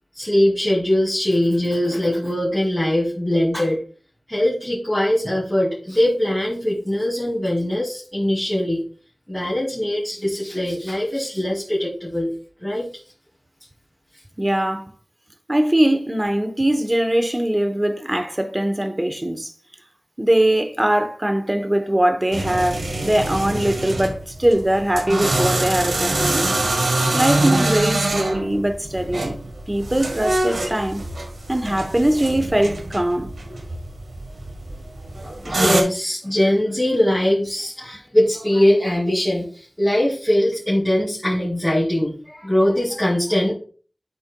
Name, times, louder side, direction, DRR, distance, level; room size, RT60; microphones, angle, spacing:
voice 1, 0.1-3.8 4.3-8.8 9.3-12.3 12.6-12.9 35.2-43.5, left 1 dB, 10° left, 2.5 m, -21 dB
voice 2, 14.4-14.8 15.5-19.5 20.2-26.5 27.1-29.3 29.7-31.0 31.5-33.3, right 1 dB, 25° right, 0.9 m, -21 dB
sound 1, 22.3-35.8, right 2 dB, 90° right, 1.2 m, -24 dB
11.5 x 4.3 x 2.2 m
wide cardioid pair, 45°, 0 cm